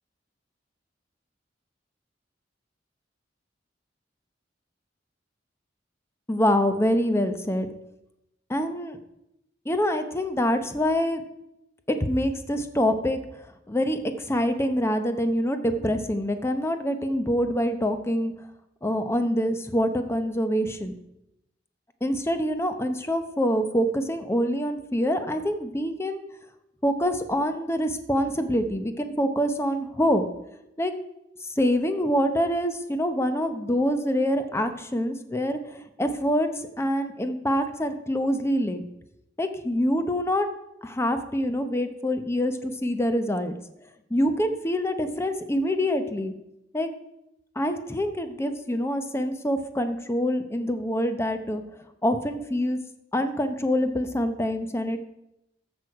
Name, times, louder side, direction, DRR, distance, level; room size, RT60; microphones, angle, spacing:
voice 1, 6.3-7.7 8.5-9.0 9.7-11.2 11.9-13.2 13.7-18.3 18.8-20.9 22.0-26.2 26.8-30.2 30.8-30.9 31.5-36.5 36.8-38.9 39.4-40.5 40.8-43.5 44.1-46.3 46.7-46.9 47.6-51.6 52.0-52.8 53.1-55.0, equal, 15° left, 8 dB, 0.8 m, -25 dB
14.0 x 6.3 x 4.7 m, 0.88 s
head